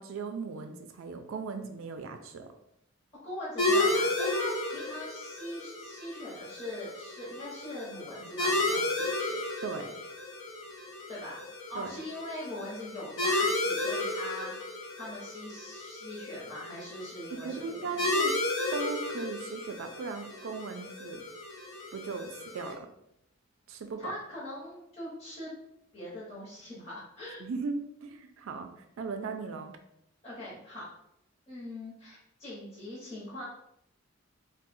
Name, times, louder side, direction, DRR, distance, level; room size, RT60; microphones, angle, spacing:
voice 1, 0.0-2.5 9.6-10.0 11.8-11.9 17.3-18.4 18.7-21.2 21.9-22.9 23.7-24.1 27.4-29.8, right 4 dB, 80° right, 6 dB, 0.4 m, -38 dB
voice 2, 3.2-9.4 11.1-14.5 15.0-18.0 24.0-25.5 25.9-27.4 30.2-30.8 31.5-33.4, left 1 dB, 30° left, -8 dB, 0.8 m, -42 dB
sound 1, 3.6-22.7, left 2 dB, 80° left, 0.9 m, -33 dB
2.6 x 2.0 x 4.0 m, 0.77 s
head